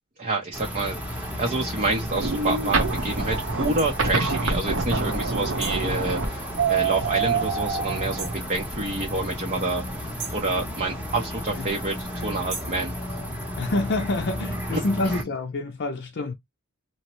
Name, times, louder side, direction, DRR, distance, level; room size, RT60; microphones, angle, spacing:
voice 1, 0.2-12.9 14.7-15.2, right 2 dB, 35° right, 0.7 m, -28 dB
sound 1, 0.5-15.2, equal, 5° right, 0.9 m, -33 dB
sound 2, 2.1-8.3, right 4 dB, 65° right, 0.9 m, -26 dB
sound 3, 3.8-3.9 5.6-5.9 8.2-8.5 10.2-10.5 12.5-12.8, right 5 dB, 85° right, 1.7 m, -36 dB
voice 2, 13.6-16.3, left 2 dB, 55° left, 0.5 m, -27 dB
2.9 x 2.1 x 3.0 m
head